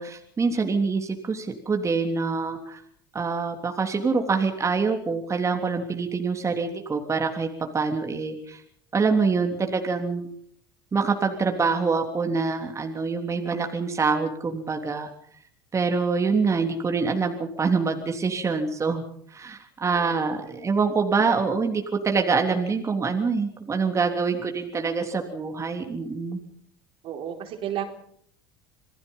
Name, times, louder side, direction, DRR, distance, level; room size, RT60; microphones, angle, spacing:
voice 1, 0.0-2.8 3.1-7.5 7.7-8.6 8.9-10.3 10.9-15.1 15.7-19.0 19.3-26.4, right 4 dB, 25° right, 4 dB, 3.4 m, -25 dB
voice 2, 19.9-20.2 20.5-20.7 27.0-27.8, right 10 dB, 55° right, 4 dB, 4.3 m, -33 dB
27.5 x 18.5 x 5.6 m, 0.66 s
hypercardioid pair, 80°, 11 cm